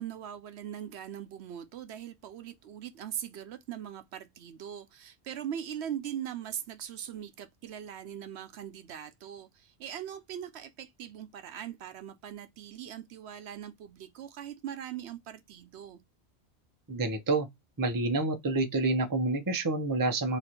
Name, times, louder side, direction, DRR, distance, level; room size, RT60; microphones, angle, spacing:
voice 1, 0.0-16.0, right 9 dB, 75° right, 0.8 m, -41 dB
voice 2, 16.9-17.5 17.8-20.4, right 2 dB, 25° right, 0.5 m, -28 dB
3.0 x 2.5 x 4.2 m
omnidirectional pair, 1.1 m